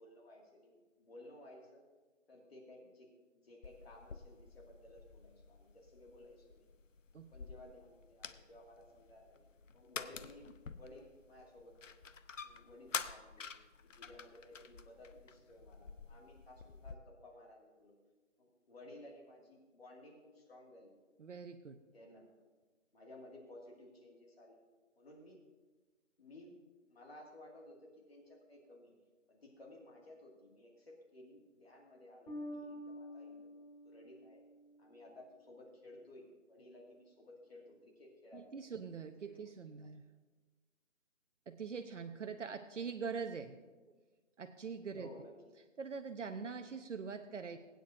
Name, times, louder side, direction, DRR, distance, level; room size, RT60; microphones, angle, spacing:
voice 1, 0.0-1.8 2.3-6.6 7.3-9.5 9.7-10.5 10.7-11.8 12.4-13.5 13.8-18.0 18.4-20.9 21.9-22.3 22.9-24.6 25.0-25.4 26.2-26.6 26.9-29.0 29.3-33.6 33.8-34.4 34.8-38.6 39.3-39.4 45.0-45.4, left 1 dB, 50° left, -1 dB, 2.2 m, -57 dB
sound 1, 3.6-17.0, left 5 dB, 75° left, 0.8 m, -49 dB
voice 2, 21.2-21.8 38.3-40.0 41.5-43.6 44.4-45.1 45.8-47.6, right 5 dB, 70° right, 8 dB, 0.8 m, -43 dB
Bass guitar, 32.3-35.3, equal, 20° left, 2.2 m, -49 dB
20.5 x 9.3 x 2.6 m, 1.3 s
figure-of-eight pair, 165°, 38 cm